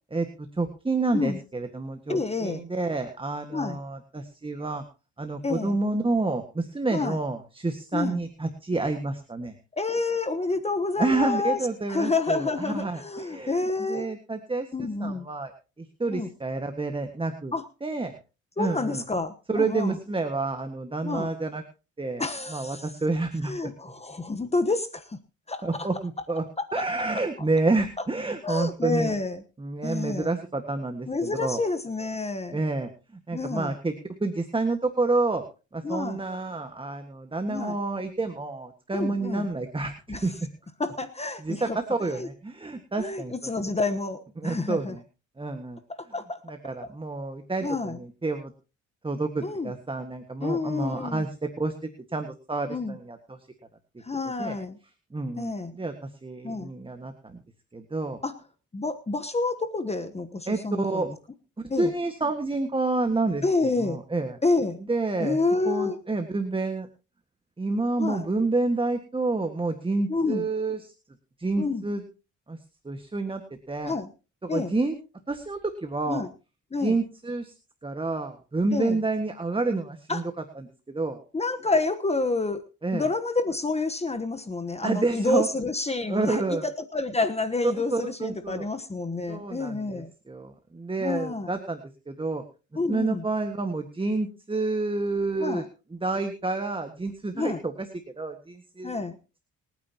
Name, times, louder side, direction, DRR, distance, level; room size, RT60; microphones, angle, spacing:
voice 1, 0.6-4.8 5.2-9.6 11.0-13.6 13.9-15.5 15.8-17.5 17.8-18.2 18.6-19.0 19.5-21.6 22.0-22.2 22.5-23.7 25.6-26.4 26.7-29.2 29.6-31.6 32.5-32.9 33.3-33.9 34.2-35.4 35.7-40.3 41.4-43.5 44.4-45.0 45.4-45.8 46.4-48.5 49.0-51.3 51.6-53.4 54.4-54.6 55.1-57.4 57.7-58.2 60.5-61.1 61.8-64.4 64.9-65.4 65.7-66.9 67.6-70.9 71.4-72.0 72.5-72.6 72.8-73.4 73.7-73.9 74.4-75.0 75.3-76.2 76.8-77.5 77.8-80.2 80.6-81.2 82.8-83.1 84.8-85.5 86.1-86.6 87.6-88.7 89.3-91.8 92.1-92.4 92.9-95.6 95.9-97.9 98.2-98.9, right 3 dB, 15° right, 6 dB, 1.7 m, -29 dB
voice 2, 2.1-2.6 3.5-3.8 5.4-5.8 6.9-7.2 7.9-8.2 9.8-11.6 11.9-14.1 14.7-15.3 16.1-16.3 17.5-17.6 18.6-20.0 21.0-21.3 22.2-22.9 23.4-25.2 25.5-25.9 26.6-26.8 28.4-29.4 29.8-30.3 31.1-32.6 33.3-33.7 35.8-36.2 37.5-37.8 38.9-39.5 40.1-40.3 40.8-41.8 42.1-42.3 43.0-44.9 45.9-46.4 47.6-48.0 49.4-49.7 50.4-51.2 52.7-52.9 54.0-54.8 55.4-55.7 56.4-56.7 58.2-58.4 58.7-61.1 61.7-61.9 63.4-64.0 64.4-64.8 65.2-66.0 68.0-68.3 70.1-70.5 71.6-71.8 73.8-74.1 74.5-74.7 76.1-76.3 76.7-77.0 78.7-79.0 80.1-80.2 81.3-82.6 82.9-90.1 91.0-91.5 92.7-93.2 95.4-95.7 97.3-97.6 98.8-99.2, left 3 dB, 20° left, 9 dB, 1.2 m, -28 dB
26.0 x 9.4 x 2.9 m, 0.33 s
cardioid pair, 90°, 30 cm